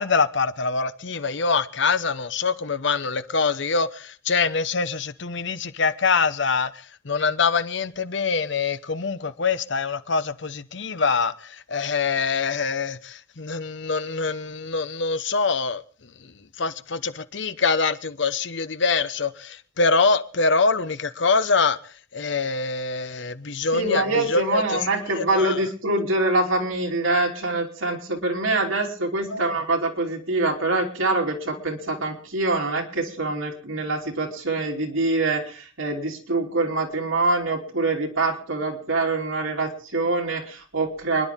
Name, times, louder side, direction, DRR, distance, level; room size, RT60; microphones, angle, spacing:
voice 1, 0.0-6.7 7.0-15.8 16.2-16.3 16.6-21.8 22.1-24.9 25.1-25.6 29.3-29.6, left 4 dB, 60° left, 0.9 m, -24 dB
voice 2, 23.7-41.3, right 2 dB, 85° right, 3.3 m, -25 dB
29.5 x 11.0 x 3.6 m
head